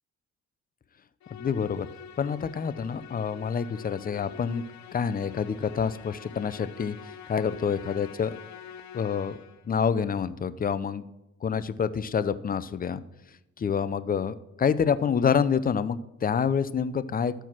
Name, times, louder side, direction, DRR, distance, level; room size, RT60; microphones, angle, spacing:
Musical instrument, 1.2-9.7, left 9 dB, 70° left, 0.8 m, -46 dB
voice 1, 1.3-1.9 2.2-4.6 4.9-8.4 8.9-9.3 9.7-11.0 11.4-13.0 13.6-17.3, left 7 dB, 30° left, 14 dB, 0.5 m, -27 dB
12.5 x 4.6 x 5.9 m, 0.92 s
cardioid pair, 90°, 30 cm